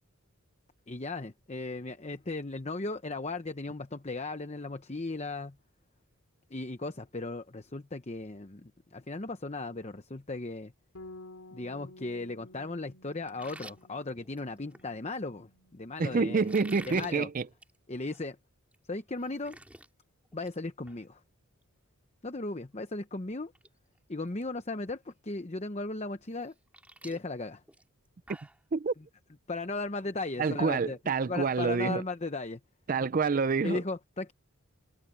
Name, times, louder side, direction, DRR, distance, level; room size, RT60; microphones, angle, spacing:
voice 1, 0.9-5.5 6.5-10.7 11.5-16.5 16.9-17.3 17.9-18.4 18.9-19.6 20.3-21.2 22.2-23.5 24.1-26.5 27.0-27.6 29.5-31.0 31.3-32.6 33.6-34.3, left 2 dB, 30° left, 0.8 m, -36 dB
Bass guitar, 10.9-17.2, left 2 dB, 75° left, 3.0 m, -53 dB
sound 1, 13.3-14.9 16.4-17.1 17.5-17.8 18.1-18.2 18.7-18.8 19.1-19.9 20.2-20.6 20.9-21.0 22.8-22.9 23.4-23.7 24.0-24.4 24.9-25.0 26.3-28.6, right 1 dB, 5° right, 4.0 m, -50 dB
voice 2, 16.0-17.5 28.7-28.9 30.4-32.0 32.9-33.8, right 4 dB, 40° right, 0.4 m, -27 dB
head